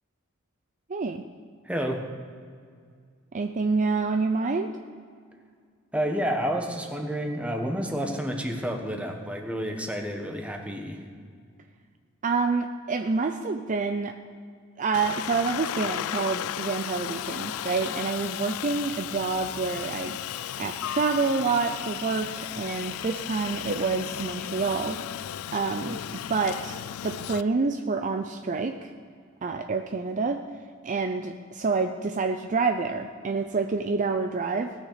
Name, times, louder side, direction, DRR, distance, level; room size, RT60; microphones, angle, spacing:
voice 1, 0.9-1.2 3.3-4.7 12.2-14.1 14.8-25.0 25.5-26.0 26.3-28.9 29.4-30.4 30.8-34.7, right 4 dB, 35° right, 6 dB, 0.5 m, -27 dB
voice 2, 1.6-2.1 5.9-11.0, equal, 5° right, 3 dB, 1.2 m, -30 dB
Aircraft, 14.9-27.4, left 11 dB, 85° left, 0.3 m, -35 dB
18.0 x 6.4 x 6.7 m, 2.1 s
head